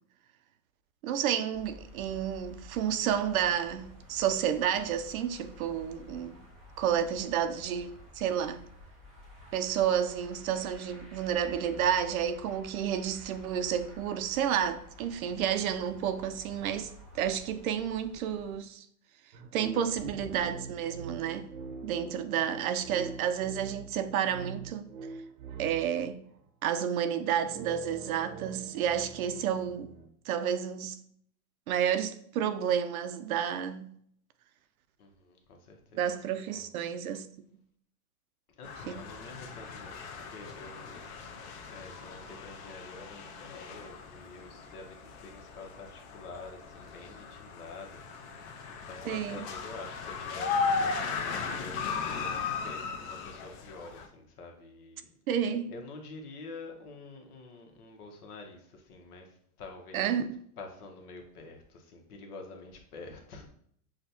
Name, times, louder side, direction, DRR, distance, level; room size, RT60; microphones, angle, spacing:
voice 1, 1.0-6.4 6.8-8.6 9.5-18.9 19.5-21.5 21.8-24.9 25.6-26.2 26.6-29.9 30.3-31.0 31.7-33.9 35.9-37.3 38.9-39.0 49.1-49.4 55.3-55.7 59.9-60.2, right 9 dB, 65° right, 0.5 m, -30 dB
sound 1, 1.5-18.5, left 1 dB, ahead, 0.3 m, -52 dB
voice 2, 6.9-7.5 19.9-20.5 22.1-22.3 35.0-36.7 38.6-41.0 41.7-60.1 60.6-63.5, left 3 dB, 70° left, 1.1 m, -48 dB
sound 2, 19.3-26.1 27.2-30.1, right 5 dB, 85° right, 0.9 m, -44 dB
sound 3, 38.6-54.1, left 5 dB, 45° left, 0.7 m, -37 dB
6.3 x 2.3 x 2.7 m
hypercardioid pair, 135°, 46 cm